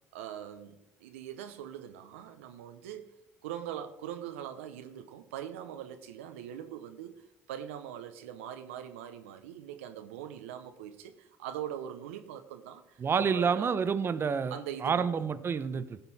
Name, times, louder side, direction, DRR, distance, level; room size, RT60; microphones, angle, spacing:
voice 1, 0.1-3.1 3.4-13.7 14.5-15.3, right 10 dB, 85° right, 7 dB, 0.8 m, -42 dB
voice 2, 13.0-14.5 14.8-16.1, right 6 dB, 35° right, 11 dB, 0.8 m, -28 dB
16.5 x 5.5 x 4.2 m, 0.89 s
hypercardioid pair, 70°, 7 cm